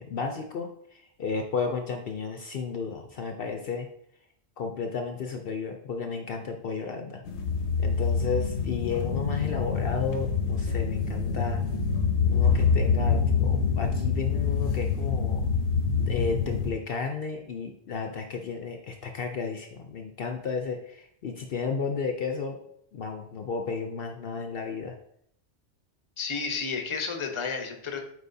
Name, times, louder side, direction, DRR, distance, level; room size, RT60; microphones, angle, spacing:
voice 1, 0.0-3.9 4.6-7.2 7.8-11.6 12.3-15.5 16.1-22.6 22.9-24.9, left 5 dB, 60° left, 4 dB, 0.8 m, -33 dB
sound 1, 7.3-16.7, left 5 dB, 85° left, 1.0 m, -26 dB
voice 2, 26.2-28.1, left 5 dB, 30° left, 4 dB, 0.8 m, -32 dB
8.2 x 4.5 x 2.7 m, 0.71 s
omnidirectional pair, 1.2 m